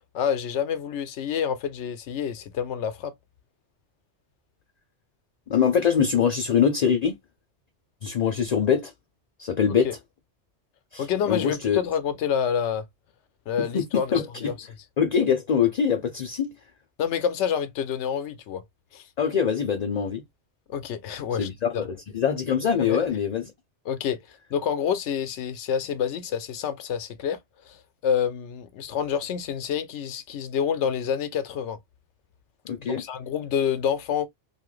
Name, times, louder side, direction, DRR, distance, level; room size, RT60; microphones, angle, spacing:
voice 1, 0.1-3.1 9.6-9.9 11.0-12.9 13.5-14.1 14.4-14.7 17.0-18.6 18.9-19.1 20.7-21.8 22.8-23.0 23.9-27.4 27.6-31.8 32.8-34.3, left 8 dB, 90° left, 0.9 m, -28 dB
voice 2, 5.5-7.2 8.0-8.9 9.4-9.9 10.9-11.8 13.6-14.5 15.0-16.5 19.2-20.2 21.4-21.9 22.1-23.5 32.7-33.0, left 7 dB, 55° left, 0.5 m, -23 dB
2.7 x 2.5 x 3.0 m
omnidirectional pair, 1.2 m